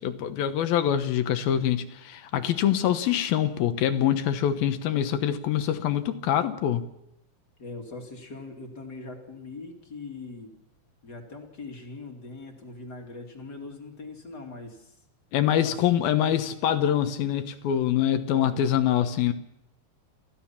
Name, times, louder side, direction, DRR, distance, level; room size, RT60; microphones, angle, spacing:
voice 1, 0.0-6.8 15.3-19.3, left 10 dB, 70° left, 9 dB, 2.5 m, -25 dB
voice 2, 7.6-10.5 11.0-15.0 15.6-15.9 18.3-18.6, left 3 dB, 30° left, 2 dB, 2.2 m, -41 dB
29.5 x 15.5 x 5.8 m, 0.78 s
omnidirectional pair, 5.2 m